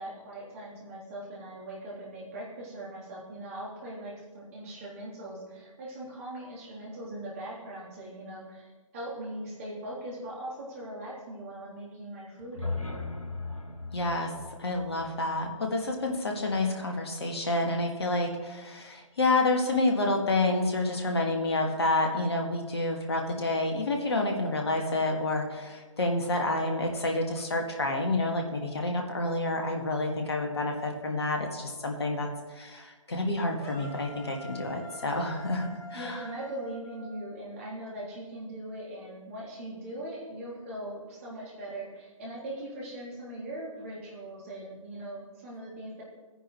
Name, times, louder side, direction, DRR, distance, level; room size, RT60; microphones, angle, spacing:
voice 1, 0.0-13.3 35.9-46.0, right 1 dB, 25° right, -6 dB, 3.4 m, -40 dB
sound 1, 12.4-16.5, left 3 dB, 85° left, 1.2 m, -39 dB
voice 2, 13.9-14.3 14.6-36.2, left 2 dB, 50° left, 2 dB, 1.9 m, -29 dB
sound 2, 33.6-37.7, equal, 10° left, 1.1 m, -46 dB
16.5 x 10.0 x 3.2 m, 1.3 s
figure-of-eight pair, 145°, 17 cm